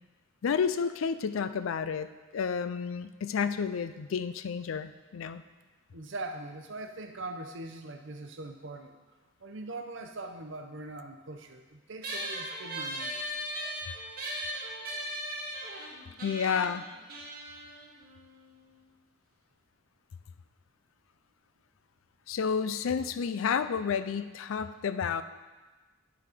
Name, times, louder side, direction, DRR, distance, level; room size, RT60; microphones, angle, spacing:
voice 1, 0.4-2.1 2.3-5.4 16.2-16.8 22.3-25.2, left 6 dB, 80° left, 12 dB, 0.4 m, -30 dB
voice 2, 5.9-9.0 9.4-13.2, right 2 dB, 65° right, 6 dB, 0.7 m, -41 dB
sound 1, 12.0-18.8, equal, 45° right, 1.6 m, -38 dB
11.0 x 4.0 x 5.1 m, 1.3 s
head